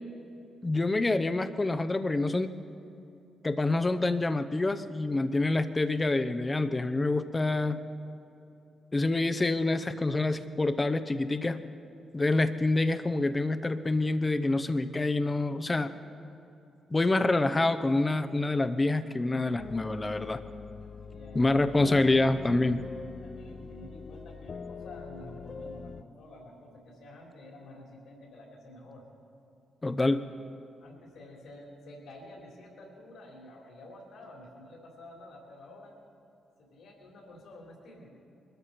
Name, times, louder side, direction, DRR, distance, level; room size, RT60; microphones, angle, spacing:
voice 1, 0.6-2.5 3.4-7.8 8.9-11.6 12.1-15.9 16.9-20.4 21.3-22.8 29.8-30.2, left 2 dB, 25° left, 10 dB, 0.8 m, -27 dB
sound 1, 19.6-26.0, left 5 dB, 50° left, 0.4 m, -43 dB
voice 2, 21.0-22.0 23.2-29.1 30.8-35.9 36.6-38.1, left 1 dB, 75° left, -1 dB, 3.5 m, -49 dB
21.5 x 13.5 x 4.4 m, 2.7 s
supercardioid pair, 50°, 0 cm